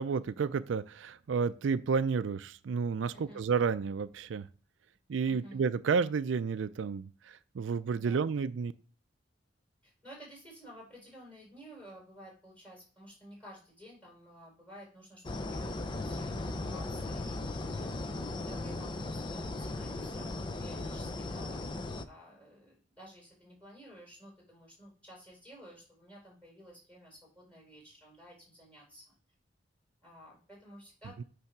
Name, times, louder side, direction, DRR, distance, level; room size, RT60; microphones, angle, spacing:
voice 1, 0.0-4.5 5.1-8.7 31.2-31.3, right 5 dB, 80° right, 13 dB, 0.4 m, -31 dB
voice 2, 5.3-5.6 8.0-8.3 9.8-29.0 30.0-31.3, equal, 5° left, -3 dB, 4.6 m, -53 dB
sound 1, 15.2-22.0, left 2 dB, 25° left, 0.5 m, -37 dB
8.4 x 3.4 x 5.9 m, 0.39 s
head